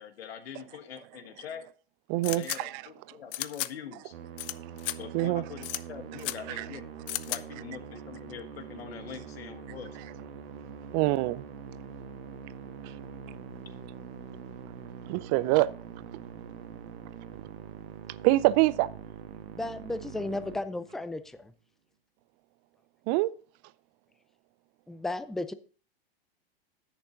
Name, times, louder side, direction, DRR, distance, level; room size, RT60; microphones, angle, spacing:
voice 1, 0.0-1.6 2.2-4.1 5.0-6.9 7.1-10.0, left 8 dB, 80° left, 1.6 m, -43 dB
voice 2, 2.1-2.8 5.1-5.4 6.6-6.7 10.9-11.4 12.8-12.9 15.1-15.7 18.2-18.9 23.1-23.3, right 18 dB, 45° right, 0.6 m, -25 dB
sound 1, 2.2-2.6 3.3-3.7 4.4-4.5 4.8-5.0 5.6-5.8 6.2-6.4 7.1-7.4, left 15 dB, 65° left, 0.6 m, -33 dB
Musical instrument, 4.1-21.2, right 7 dB, 75° right, 1.5 m, -44 dB
voice 3, 19.5-21.2 24.9-25.5, left 2 dB, ahead, 0.4 m, -34 dB
10.0 x 8.3 x 3.9 m
hypercardioid pair, 105°, 30 cm